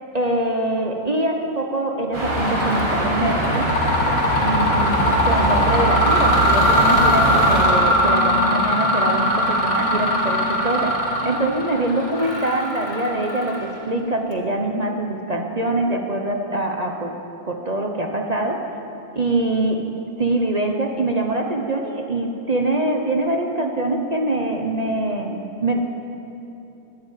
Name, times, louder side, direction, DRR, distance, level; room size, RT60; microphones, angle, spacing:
voice 1, 0.1-3.6 4.4-10.9 11.2-17.1 17.5-18.6 19.1-19.8 20.2-25.8, right 2 dB, 40° right, 2 dB, 0.5 m, -24 dB
sound 1, 2.1-7.7, right 1 dB, 80° right, 6.1 m, -22 dB
Mechanisms, 2.6-2.9 3.3-13.9, equal, 80° left, 3.1 m, -20 dB
12.5 x 12.0 x 9.0 m, 2.8 s
omnidirectional pair, 2.3 m